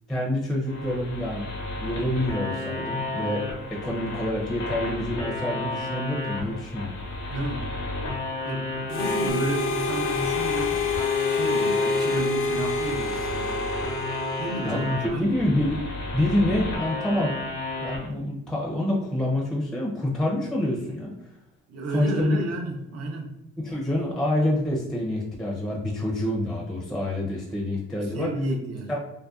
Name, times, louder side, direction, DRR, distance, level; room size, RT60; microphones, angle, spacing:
voice 1, 0.1-1.5 1.8-6.9 14.6-15.8 16.1-17.4 17.8-21.1 21.9-22.4 23.6-28.3 28.9-29.0, left 1 dB, ahead, -3 dB, 0.5 m, -27 dB
sound 1, 0.7-18.1, left 2 dB, 75° left, 0.7 m, -33 dB
voice 2, 7.3-7.7 8.4-10.7 11.2-13.6 14.4-15.5 21.7-23.3 28.1-29.0, right 2 dB, 55° right, 2 dB, 0.6 m, -31 dB
Harmonica, 8.9-15.3, left 4 dB, 50° left, 0.4 m, -27 dB
2.6 x 2.1 x 2.3 m, 0.84 s
cardioid pair, 90°, 30 cm